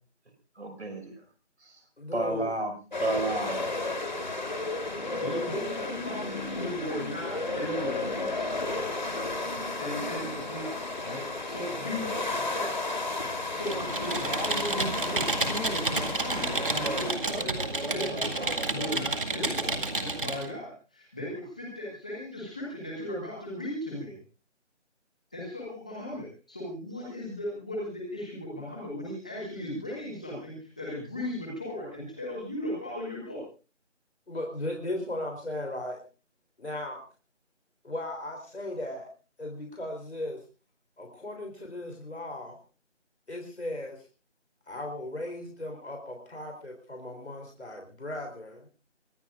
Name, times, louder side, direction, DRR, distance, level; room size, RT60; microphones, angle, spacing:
voice 1, 0.6-1.1 1.6-1.8 2.1-3.5, right 2 dB, 65° right, 4 dB, 5.9 m, -31 dB
voice 2, 2.0-2.6 3.0-3.3 34.3-36.0 36.6-37.0 37.8-39.1 39.4-40.4 41.0-42.6 43.3-44.1 44.7-48.7, left 1 dB, 65° left, 2 dB, 3.7 m, -37 dB
sound 1, 2.9-17.1, left 2 dB, 40° left, 2.1 m, -33 dB
voice 3, 5.2-8.6 9.8-13.0 13.3-17.6 17.9-24.2 25.3-33.4, left 1 dB, 5° left, -3 dB, 1.5 m, -37 dB
Computer keyboard, 13.6-20.5, right 2 dB, 45° right, 2.1 m, -30 dB
23.5 x 17.0 x 2.5 m, 0.35 s
figure-of-eight pair, 175°, 36 cm